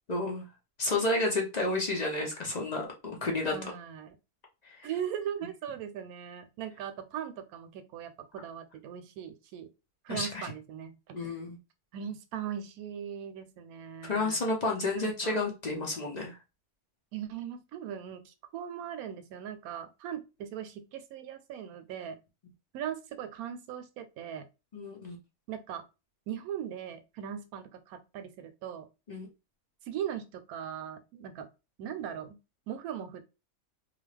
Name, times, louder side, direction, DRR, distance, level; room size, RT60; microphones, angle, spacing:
voice 1, 0.1-0.4 0.8-3.5 4.6-4.9 10.1-10.4 11.1-11.6 14.0-16.4 24.7-25.2 29.1-29.3, left 2 dB, 45° left, 0.5 m, -31 dB
voice 2, 3.5-4.2 4.8-9.7 10.0-11.3 11.9-14.4 14.9-15.4 17.1-22.2 22.7-24.5 25.5-25.9 26.3-28.9 29.8-31.5 31.8-32.4 32.7-33.2, right 9 dB, 80° right, 1.0 m, -39 dB
2.6 x 2.4 x 3.2 m
omnidirectional pair, 1.5 m